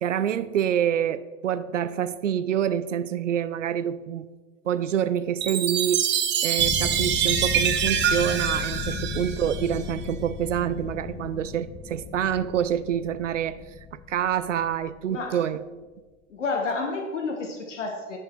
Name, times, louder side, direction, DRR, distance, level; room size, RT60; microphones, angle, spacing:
voice 1, 0.0-4.3 4.6-6.1 6.4-13.6 13.9-15.6, right 9 dB, 90° right, 14 dB, 0.5 m, -27 dB
Chime, 5.4-9.9, right 9 dB, 30° right, 1.0 m, -25 dB
sound 1, 6.6-15.0, left 7 dB, 25° left, 0.9 m, -35 dB
voice 2, 15.1-15.4 16.3-18.2, left 3 dB, 85° left, 3 dB, 1.3 m, -30 dB
10.5 x 5.6 x 4.5 m, 1.3 s
hypercardioid pair, 90°, 36 cm